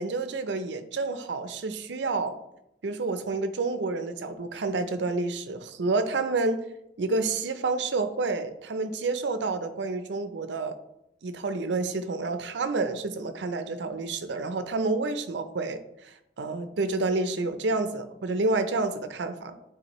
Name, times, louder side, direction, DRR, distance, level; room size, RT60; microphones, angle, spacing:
voice 1, 0.0-2.4 2.8-6.6 7.0-10.8 11.2-19.6, right 3 dB, 80° right, 10 dB, 0.5 m, -29 dB
9.0 x 3.9 x 3.0 m, 0.83 s
head